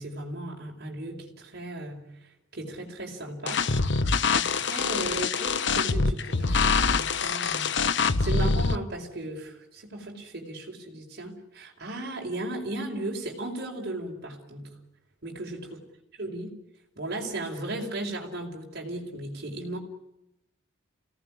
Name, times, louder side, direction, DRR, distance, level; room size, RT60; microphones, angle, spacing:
voice 1, 0.0-3.7 4.3-14.8 15.2-15.8 16.2-16.5 17.0-19.8, right 1 dB, 55° right, -1 dB, 4.9 m, -36 dB
sound 1, 3.5-8.8, left 4 dB, 60° left, 1.0 m, -25 dB
28.0 x 18.0 x 9.9 m, 0.86 s
head